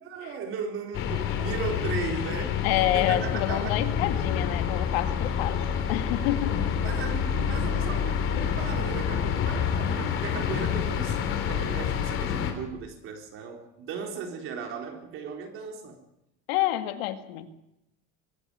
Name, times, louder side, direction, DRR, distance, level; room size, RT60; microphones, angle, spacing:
voice 1, 0.1-3.8 6.5-16.0, right 5 dB, 45° right, 4.2 m, -36 dB
sound 1, 0.9-12.5, left 8 dB, 45° left, 3.8 m, -28 dB
voice 2, 2.6-5.6 5.9-6.6 16.5-17.5, left 14 dB, 85° left, 2.1 m, -28 dB
23.5 x 12.5 x 10.0 m
cardioid pair, 150°, 30 cm